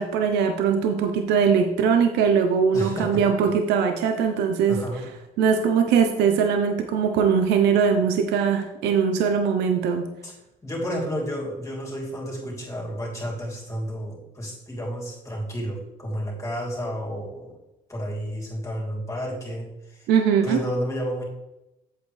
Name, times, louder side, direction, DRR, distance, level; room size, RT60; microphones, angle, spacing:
voice 1, 0.0-4.8 5.4-10.1 20.1-20.6, right 6 dB, 85° right, 6 dB, 0.7 m, -21 dB
voice 2, 2.7-3.2 4.7-5.1 10.2-10.3 10.6-17.6 17.9-20.1 20.4-21.2, equal, 20° left, -3 dB, 3.2 m, -31 dB
7.9 x 7.9 x 3.3 m, 0.95 s
cardioid pair, 110°, 17 cm